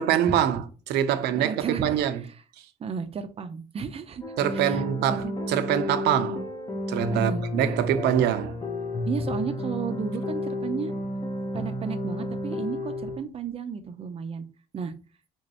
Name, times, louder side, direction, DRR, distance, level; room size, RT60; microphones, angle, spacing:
voice 1, 0.0-2.2 4.4-6.4 6.9-8.6, right 10 dB, 80° right, 0.6 m, -25 dB
voice 2, 1.3-2.4 2.8-5.4 7.1-7.4 9.1-10.9 11.5-14.5 14.7-14.9, right 6 dB, 35° right, 0.5 m, -33 dB
sound 1, 4.2-13.2, left 1 dB, 25° left, 0.7 m, -31 dB
3.5 x 3.1 x 2.8 m
cardioid pair, 110°, 17 cm